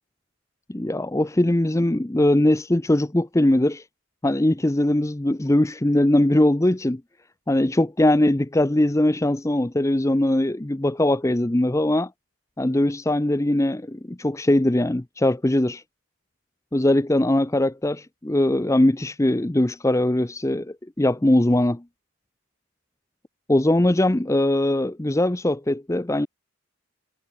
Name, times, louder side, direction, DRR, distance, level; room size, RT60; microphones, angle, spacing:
voice 1, 0.7-3.8 4.2-7.0 7.5-12.1 12.6-15.8 16.7-21.8 23.5-26.3, left 1 dB, 15° left, 0.6 m, -21 dB
head